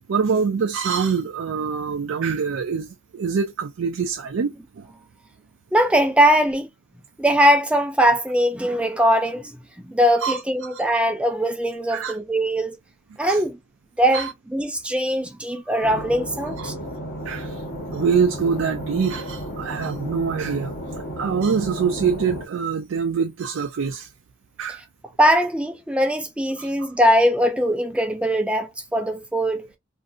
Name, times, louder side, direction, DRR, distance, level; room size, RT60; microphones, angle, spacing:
voice 1, 0.1-4.9 10.2-10.8 11.9-12.2 13.3-13.4 14.1-14.3 16.6-16.7 17.3-17.6 17.9-20.7 21.2-24.1 24.6-24.8 26.6-26.9, right 6 dB, 85° right, 0.4 m, -25 dB
voice 2, 5.7-6.7 7.2-9.6 9.9-12.8 13.2-13.6 14.0-16.7 25.2-29.7, equal, 5° right, 0.4 m, -21 dB
sound 1, 15.8-22.5, equal, 50° left, 1.2 m, -33 dB
2.6 x 2.6 x 2.3 m
head